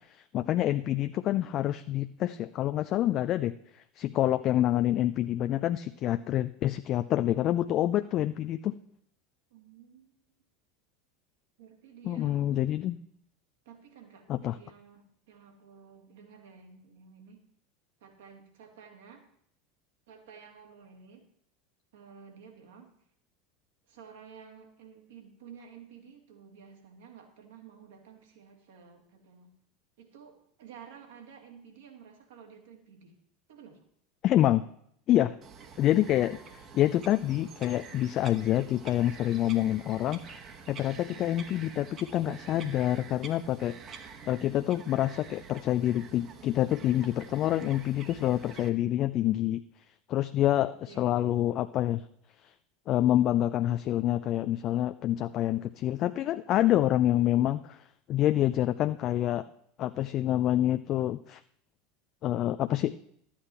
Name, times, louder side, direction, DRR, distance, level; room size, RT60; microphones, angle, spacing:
voice 1, 0.1-3.5 4.0-8.7 12.1-13.0 14.3-14.5 34.2-34.6 35.1-35.4 35.8-43.7 44.3-49.6 50.1-52.0 52.9-57.6 58.1-59.4 59.8-61.4 62.2-62.9, left 13 dB, 45° left, 11 dB, 0.4 m, -27 dB
voice 2, 1.0-1.5 9.5-10.2 11.6-12.6 13.6-17.4 18.0-19.3 20.1-21.3 21.9-22.9 23.9-29.5 30.0-33.2 33.5-33.8 40.9-41.3 50.6-51.2 57.1-57.4, right 7 dB, 65° right, 3 dB, 2.4 m, -52 dB
Bird vocalization bird call bird song, 35.4-48.7, right 6 dB, 40° right, 1.5 m, -48 dB
12.5 x 8.7 x 4.3 m, 0.69 s
figure-of-eight pair, 80°, 0 cm